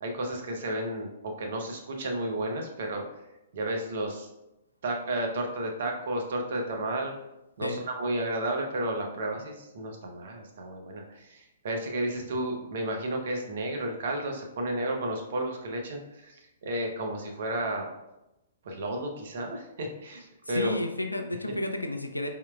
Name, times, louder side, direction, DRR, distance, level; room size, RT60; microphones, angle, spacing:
voice 1, 0.0-3.0 3.5-4.3 4.8-7.1 7.6-17.9 18.6-20.8, right 1 dB, 55° right, 2 dB, 0.8 m, -32 dB
voice 2, 20.5-22.3, left 1 dB, 90° left, 5 dB, 0.4 m, -31 dB
4.3 x 3.7 x 2.3 m, 0.93 s
figure-of-eight pair, 115°, 0 cm